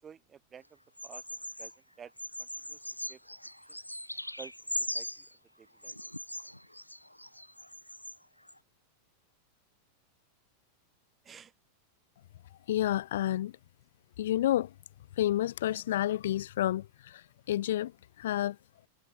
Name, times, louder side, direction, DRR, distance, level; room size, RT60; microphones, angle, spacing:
voice 1, 0.0-1.2 1.6-1.7 2.0-2.1 2.4-2.8 3.1-3.2 3.7-3.8 4.4-4.5 4.9-5.2 5.6-6.0 11.2-11.5, right 7 dB, 20° right, 6.2 m, -51 dB
Bird vocalization bird call bird song, 1.0-1.7 2.2-5.3 5.8-8.2 8.5-8.6, left 1 dB, 90° left, 1.1 m, -40 dB
voice 2, 12.7-13.5 14.2-14.7 15.2-17.9 18.2-18.6, left 13 dB, 60° left, 0.3 m, -30 dB
figure-of-eight pair, 90°, 0 cm